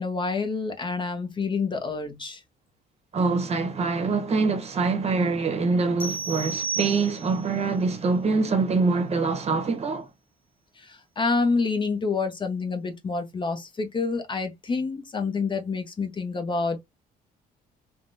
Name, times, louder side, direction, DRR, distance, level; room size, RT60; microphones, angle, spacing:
voice 1, 0.0-2.4 10.8-16.8, left 4 dB, 30° left, 0.7 m, -28 dB
voice 2, 3.1-10.1, right 4 dB, 40° right, 0.9 m, -24 dB
sound 1, 6.0-7.5, right 5 dB, 10° left, 1.0 m, -32 dB
3.3 x 2.1 x 2.6 m
cardioid pair, 115°, 17 cm